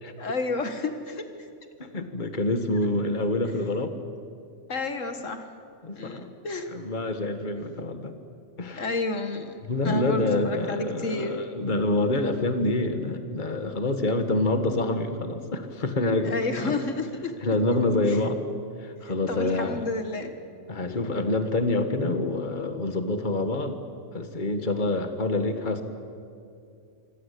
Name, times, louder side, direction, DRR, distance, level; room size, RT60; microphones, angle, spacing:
voice 1, 0.2-1.5 4.7-5.5 5.9-6.7 8.8-9.6 9.8-11.4 16.2-17.3 18.1-18.2 19.3-20.4 20.9-21.0, left 3 dB, 75° left, 7 dB, 1.9 m, -31 dB
voice 2, 1.8-4.0 5.8-6.3 6.7-8.2 8.6-8.8 9.7-16.7 17.4-18.4 18.8-19.8 20.7-23.8 24.1-25.8, left 2 dB, 40° left, 8 dB, 1.9 m, -27 dB
26.5 x 25.5 x 8.5 m, 2.4 s
omnidirectional pair, 1.3 m